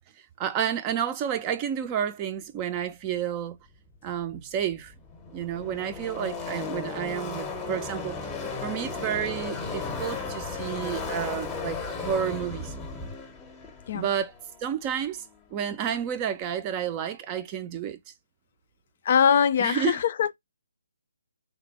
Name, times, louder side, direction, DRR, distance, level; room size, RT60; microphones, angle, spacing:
voice 1, 0.4-3.6 4.0-4.9 5.3-12.7 13.9-14.3 14.6-15.2 15.5-18.0 19.6-20.0, right 9 dB, 25° right, 0.5 m, -30 dB
Car passing by / Race car auto racing, 4.6-15.2, left 4 dB, 15° left, 0.8 m, -35 dB
voice 2, 19.0-20.4, left 7 dB, 45° left, 0.4 m, -22 dB
3.3 x 2.2 x 4.1 m
figure-of-eight pair, 145°, 0 cm